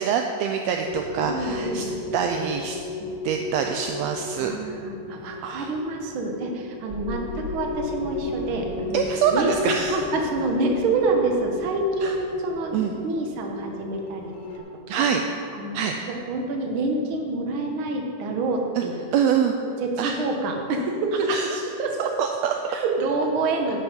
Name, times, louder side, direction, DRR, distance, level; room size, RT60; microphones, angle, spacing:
voice 1, 0.0-1.8 2.1-2.8 3.2-4.5 5.4-5.7 8.9-10.0 12.0-12.1 12.7-12.9 14.9-15.2 15.7-16.0 19.1-19.6 20.0-20.1 21.3-21.6 22.2-22.8, right 7 dB, 80° right, 4 dB, 1.5 m, -25 dB
sound 1, 0.9-14.6, left 3 dB, 85° left, 2.5 m, -35 dB
voice 2, 1.2-1.9 3.0-3.1 4.4-9.0 9.3-9.6 9.9-14.6 15.0-15.1 15.5-15.8 16.1-19.1 19.6-21.5 21.8-22.1 22.7-23.8, right 2 dB, 60° right, 2 dB, 1.5 m, -27 dB
sound 2, 6.9-12.8 13.2-13.3, equal, 30° right, 1.2 m, -42 dB
10.5 x 7.8 x 5.4 m, 2.5 s
omnidirectional pair, 3.5 m